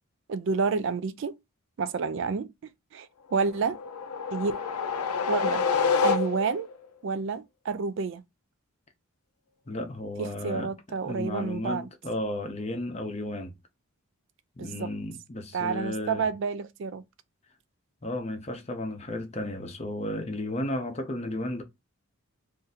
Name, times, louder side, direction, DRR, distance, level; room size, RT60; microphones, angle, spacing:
voice 1, 0.3-1.4 1.8-2.5 2.9-3.8 4.3-4.6 5.3-5.6 6.0-6.7 7.0-8.2 10.2-11.9 14.6-14.9 15.5-17.0, right 5 dB, 55° right, 0.3 m, -29 dB
sound 1, 3.5-6.7, left 5 dB, 90° left, 0.6 m, -27 dB
voice 2, 9.7-13.5 14.6-16.2 18.0-21.6, left 1 dB, 30° left, 0.6 m, -33 dB
2.6 x 2.5 x 3.9 m
head